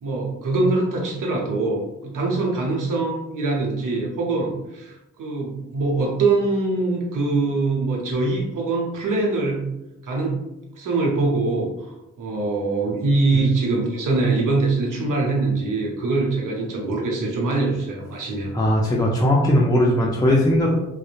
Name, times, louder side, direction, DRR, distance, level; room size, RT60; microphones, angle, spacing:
voice 1, 0.0-9.7 10.0-10.4 10.7-18.5, right 3 dB, 70° right, -1 dB, 0.8 m, -23 dB
voice 2, 18.5-20.8, left 1 dB, 10° left, -3 dB, 0.5 m, -19 dB
2.7 x 2.0 x 2.5 m, 0.93 s
supercardioid pair, 45°, 33 cm